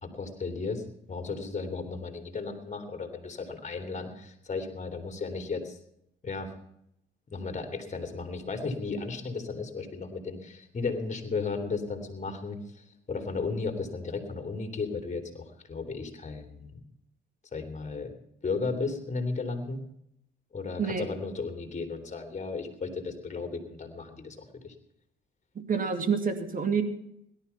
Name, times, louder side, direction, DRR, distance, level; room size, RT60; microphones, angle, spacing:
voice 1, 0.0-5.8 6.2-6.5 7.3-16.8 17.5-18.1 18.4-19.8 20.5-24.7, left 4 dB, 35° left, 6 dB, 3.0 m, -35 dB
voice 2, 25.5-26.8, right 6 dB, 45° right, 8 dB, 2.3 m, -28 dB
17.5 x 12.0 x 5.7 m, 0.76 s
cardioid pair, 90°, 20 cm